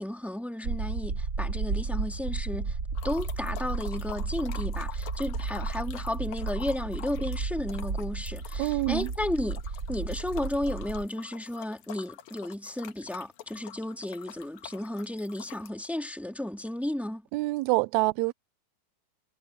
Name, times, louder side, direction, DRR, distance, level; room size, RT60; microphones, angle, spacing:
voice 1, 0.0-2.8 3.0-9.6 9.9-17.3, left 1 dB, ahead, 1.5 m, -33 dB
sound 1, 0.6-11.1, right 4 dB, 35° right, 2.2 m, -33 dB
sound 2, 2.9-15.7, left 11 dB, 75° left, 2.5 m, -46 dB
voice 2, 8.6-9.1 17.3-18.3, right 21 dB, 80° right, 1.7 m, -26 dB
omnidirectional pair, 3.7 m